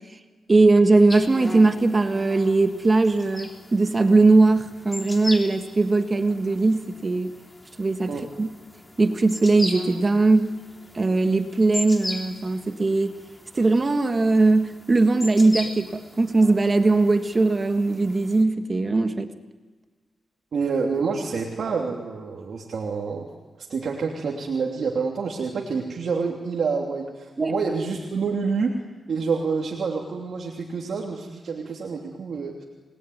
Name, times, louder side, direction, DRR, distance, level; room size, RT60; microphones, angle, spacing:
voice 1, 0.5-7.3 7.8-8.5 9.0-10.6 10.9-13.1 13.5-19.3 27.4-27.5, right 3 dB, 30° right, 7 dB, 1.5 m, -20 dB
sound 1, 1.1-18.4, left 1 dB, 15° left, 3.3 m, -39 dB
voice 2, 20.5-23.3 23.6-28.8 29.1-32.6, right 5 dB, 65° right, -1 dB, 3.0 m, -27 dB
28.5 x 20.5 x 9.5 m, 1.4 s
wide cardioid pair, 130°, 0 cm